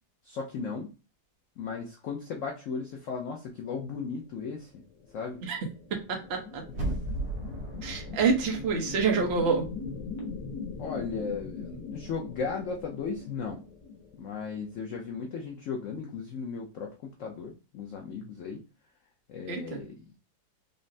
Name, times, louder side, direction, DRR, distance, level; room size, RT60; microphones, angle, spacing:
voice 1, 0.2-0.9 1.6-4.8 5.1-5.4 6.8-7.0 10.8-13.6 14.2-18.6 19.3-20.2, left 5 dB, 90° left, 1 dB, 0.6 m, -36 dB
sound 1, 5.0-14.7, left 5 dB, 55° left, 1.3 m, -41 dB
voice 2, 6.1-6.6 7.8-9.7 19.5-19.8, right 5 dB, 50° right, 2 dB, 0.8 m, -27 dB
sound 2, 6.7-9.6 10.0-10.1, right 1 dB, 75° right, 1.9 m, -36 dB
5.2 x 2.0 x 2.6 m, 0.33 s
omnidirectional pair, 2.0 m